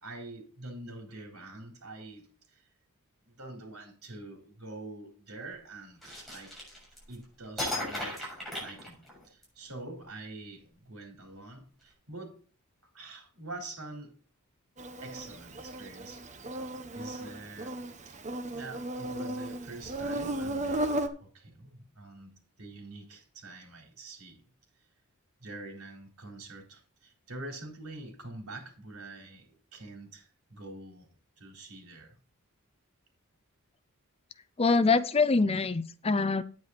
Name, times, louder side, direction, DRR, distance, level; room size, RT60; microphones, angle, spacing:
voice 1, 0.0-2.7 3.3-6.6 7.1-12.4 12.9-14.2 15.0-16.4 16.9-18.2 18.5-20.9 21.2-24.4 25.4-32.2, right 2 dB, 70° right, 4.0 m, -46 dB
sound 1, 6.0-7.1 7.6-9.4, left 1 dB, ahead, 6.8 m, -36 dB
Insect, 14.8-21.1, right 1 dB, 30° right, 1.2 m, -35 dB
voice 2, 34.6-36.4, left 4 dB, 25° left, 0.5 m, -24 dB
9.7 x 9.6 x 4.2 m
head